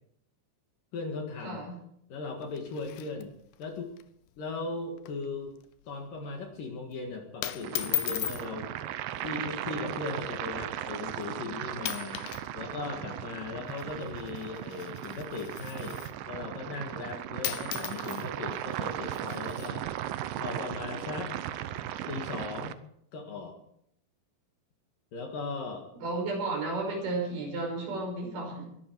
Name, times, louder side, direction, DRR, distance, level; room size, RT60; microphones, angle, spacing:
voice 1, 0.9-1.6 2.1-3.3 3.6-3.9 4.4-5.5 5.9-8.7 9.2-12.2 12.5-19.9 20.4-21.3 22.1-22.7 23.1-23.6 25.1-25.9, left 4 dB, 60° left, 2 dB, 3.1 m, -38 dB
voice 2, 1.4-1.8 26.0-28.7, right 3 dB, 50° right, 1 dB, 7.0 m, -33 dB
sound 1, 2.4-3.7 4.0-4.1 4.4-4.6 5.0-5.3 5.6-5.9 6.7-6.9 7.4-8.5 9.5-9.7 10.4-10.5 11.2-11.4 11.8-12.5 12.7-16.3 17.1-17.2 17.4-19.7, left 14 dB, 80° left, 2.7 m, -38 dB
sound 2, 7.6-22.7, right 12 dB, 90° right, 1.9 m, -37 dB
22.0 x 12.0 x 4.6 m, 0.73 s
omnidirectional pair, 5.0 m